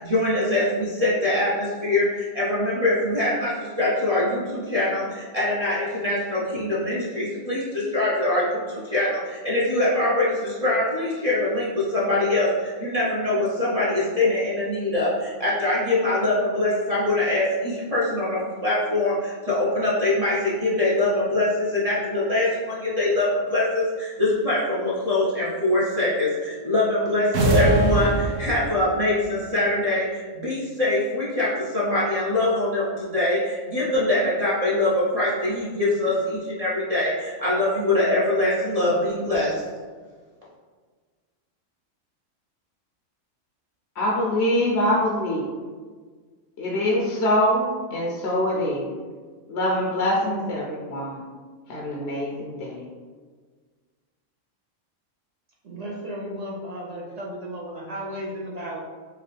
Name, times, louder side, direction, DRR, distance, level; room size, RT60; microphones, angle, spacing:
voice 1, 0.0-39.6, left 2 dB, 35° right, -9 dB, 0.8 m, -23 dB
sound 1, 27.3-28.9, right 1 dB, 75° right, 1.0 m, -21 dB
voice 2, 44.0-45.6 46.6-49.0 49.5-51.2 51.7-52.9, left 1 dB, 60° left, -3 dB, 0.8 m, -24 dB
voice 3, 55.6-58.8, equal, 50° right, -3 dB, 0.5 m, -34 dB
4.7 x 2.4 x 3.3 m, 1.5 s
omnidirectional pair, 1.3 m